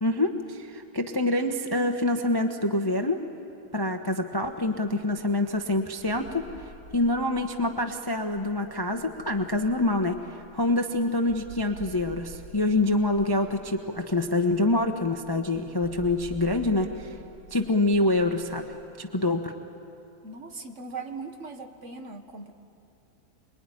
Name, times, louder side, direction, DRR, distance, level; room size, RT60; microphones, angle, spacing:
voice 1, 0.0-3.2 3.7-17.2 17.5-18.7 19.0-19.5, left 2 dB, 20° left, 5 dB, 0.7 m, -26 dB
sound 1, 4.5-18.8, right 2 dB, 90° right, 4.1 m, -49 dB
voice 2, 20.2-22.5, right 4 dB, 40° right, 5 dB, 1.8 m, -39 dB
26.5 x 22.0 x 9.9 m, 2.7 s
omnidirectional pair, 2.1 m